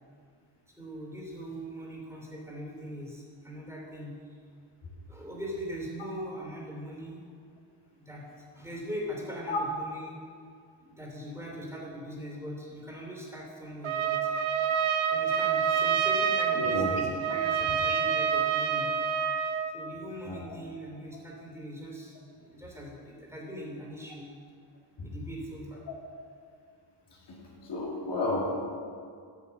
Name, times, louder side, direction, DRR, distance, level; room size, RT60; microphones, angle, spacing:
voice 1, 0.8-4.3 5.1-7.2 8.0-8.3 8.5-10.1 10.8-14.3 15.1-18.9 19.7-24.3 25.0-25.9, equal, 5° right, -3 dB, 2.8 m, -41 dB
Trumpet, 13.8-19.7, right 7 dB, 75° right, 0.9 m, -27 dB
voice 2, 16.6-16.9 20.3-20.4 25.0-25.1 27.6-28.5, left 2 dB, 55° left, -3 dB, 2.1 m, -31 dB
8.3 x 7.1 x 6.9 m, 2.2 s
cardioid pair, 120°, 49 cm